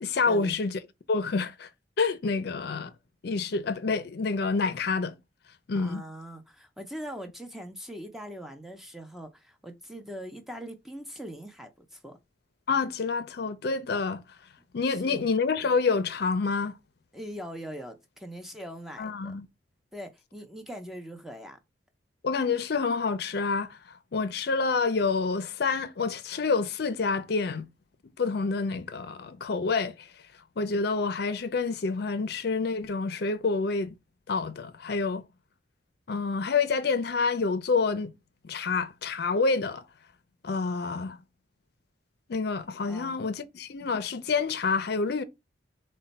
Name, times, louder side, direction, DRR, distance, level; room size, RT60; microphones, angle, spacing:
voice 1, 0.0-0.8 1.1-1.7 2.0-2.9 3.2-5.1 5.7-6.0 12.7-14.2 14.7-16.7 19.0-19.5 22.2-23.8 24.1-27.7 28.2-30.1 30.6-33.9 34.3-35.2 36.1-38.1 38.4-39.8 40.4-41.2 42.3-45.2, left 4 dB, 60° left, 0.5 m, -28 dB
voice 2, 5.8-12.2 14.9-15.2 17.1-19.3 19.9-21.6 42.9-43.2, equal, ahead, 0.5 m, -41 dB
4.2 x 2.2 x 4.0 m
head